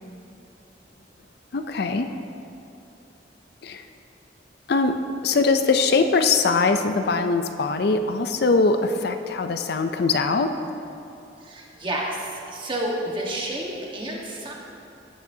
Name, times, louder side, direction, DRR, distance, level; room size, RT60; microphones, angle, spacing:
voice 1, 1.5-2.1 3.6-3.9 4.7-5.0 5.2-10.6, left 4 dB, 60° left, 7 dB, 0.5 m, -22 dB
voice 2, 11.4-14.5, right 1 dB, 25° right, -2 dB, 1.4 m, -30 dB
15.5 x 8.7 x 2.7 m, 2.7 s
head